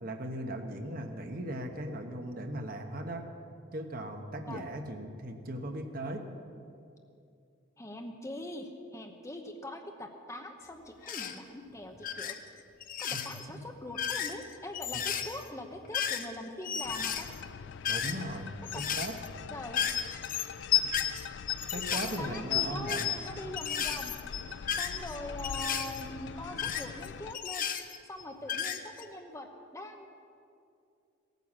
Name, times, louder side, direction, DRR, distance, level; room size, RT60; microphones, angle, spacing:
voice 1, 0.0-3.3 3.7-6.3 13.1-13.4 14.9-15.0 17.9-19.1 21.7-23.2, right 1 dB, 50° right, 5 dB, 1.1 m, -38 dB
voice 2, 7.8-12.4 13.0-17.3 18.7-18.8 19.5-19.8 21.9-24.1 24.8-27.7 28.1-30.1, left 1 dB, 15° left, 4 dB, 0.9 m, -42 dB
sound 1, 11.0-11.4 12.0-12.4 12.8-13.4 13.8-16.4 16.6-18.4 18.7-19.3 19.7-23.3 23.6-26.0 26.6-28.2 28.5-29.0, left 9 dB, 45° left, 0.7 m, -33 dB
sound 2, 16.8-27.4, left 6 dB, 65° left, 0.3 m, -44 dB
17.0 x 9.3 x 7.4 m, 2.5 s
head